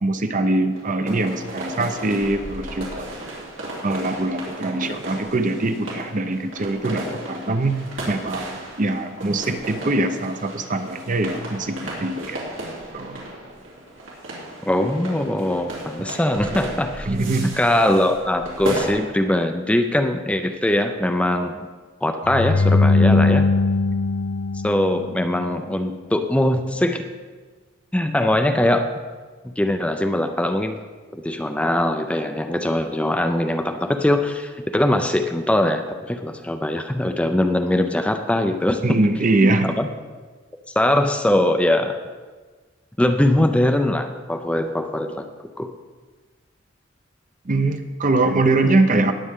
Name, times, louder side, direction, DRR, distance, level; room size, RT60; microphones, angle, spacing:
voice 1, 0.0-3.1 3.3-3.4 3.8-7.8 8.1-12.4 12.9-13.2 17.1-17.5 23.9-24.0 38.8-39.8 47.5-49.1, right 2 dB, 45° right, 8 dB, 0.7 m, -22 dB
sound 1, 0.7-18.9, right 1 dB, 90° right, 3.4 m, -34 dB
voice 2, 14.7-17.1 17.4-21.7 22.0-23.5 24.6-27.0 27.9-28.9 29.4-30.8 31.1-39.0 39.4-39.9 40.8-42.0 43.0-45.3 45.6-45.7, left 1 dB, 5° left, 6 dB, 0.5 m, -21 dB
sound 2, 22.3-25.5, left 3 dB, 70° left, 0.4 m, -19 dB
19.5 x 7.6 x 3.7 m, 1.4 s
head